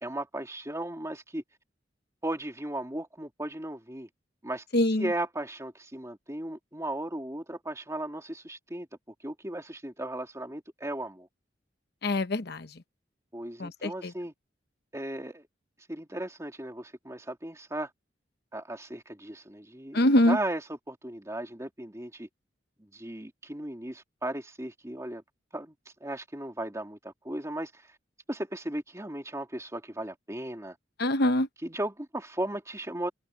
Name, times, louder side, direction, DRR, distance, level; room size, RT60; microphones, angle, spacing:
voice 1, 0.0-1.4 2.2-4.1 4.4-8.9 9.2-11.3 13.3-14.3 14.9-15.4 15.9-17.9 18.5-22.3 22.8-25.2 25.5-25.7 26.0-28.0 28.3-30.8 31.6-33.1, right 1 dB, 15° right, 2.7 m, -36 dB
voice 2, 4.7-5.1 12.0-12.7 13.6-13.9 19.9-20.4 31.0-31.5, left 1 dB, 60° left, 1.0 m, -23 dB
head